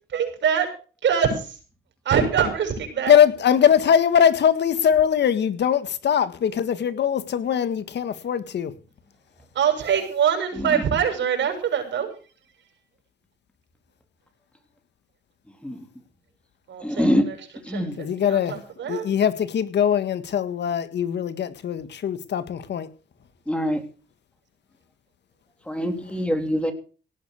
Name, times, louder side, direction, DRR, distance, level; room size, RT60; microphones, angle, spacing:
voice 1, 0.1-0.7 1.0-1.6 2.0-3.2 9.5-12.1 16.7-17.4 17.7-19.1, right 8 dB, 65° right, 7.0 m, -24 dB
voice 2, 3.1-8.7 18.0-18.6 18.9-22.9, left 8 dB, 60° left, 1.8 m, -21 dB
voice 3, 16.8-17.3 17.7-18.0 23.5-23.8 25.7-26.7, equal, 5° left, 3.5 m, -24 dB
18.0 x 8.9 x 6.5 m
cardioid pair, 90°, 20 cm